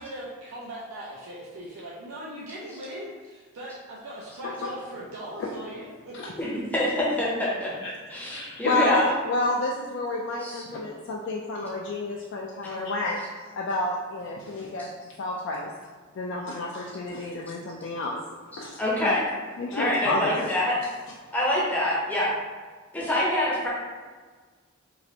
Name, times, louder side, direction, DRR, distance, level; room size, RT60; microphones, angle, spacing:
voice 1, 0.0-6.1, right 1 dB, 90° right, -5 dB, 0.5 m, -39 dB
voice 2, 6.4-7.7 8.1-9.0 10.4-10.6 14.8-14.9 18.8-19.2 19.7-20.7 21.3-22.3 22.9-23.7, left 1 dB, 10° left, -6 dB, 0.6 m, -25 dB
voice 3, 8.3-13.2 13.5-15.7 16.1-18.2 18.5-20.5, left 2 dB, 60° left, -2 dB, 0.3 m, -30 dB
3.1 x 2.4 x 2.7 m, 1.4 s
head